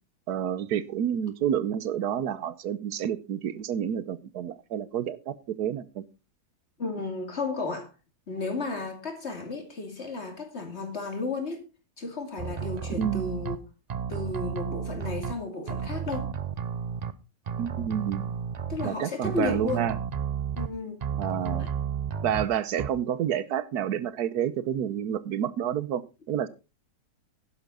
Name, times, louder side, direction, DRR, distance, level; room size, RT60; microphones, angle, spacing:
voice 1, 0.3-6.0 12.9-13.3 17.6-18.3 18.8-20.0 21.2-21.6 22.2-26.5, right 9 dB, 80° right, 1.4 m, -29 dB
voice 2, 6.8-7.9 8.3-11.6 12.0-13.6 14.1-16.3 18.7-19.9 20.6-21.7, left 3 dB, 45° left, 2.8 m, -33 dB
sound 1, 12.4-13.6 13.9-15.3 15.7-17.1 17.5-18.9 19.2-20.7 21.0-22.4 22.8-22.9, right 7 dB, 50° right, 0.5 m, -32 dB
11.5 x 10.5 x 3.8 m
omnidirectional pair, 1.7 m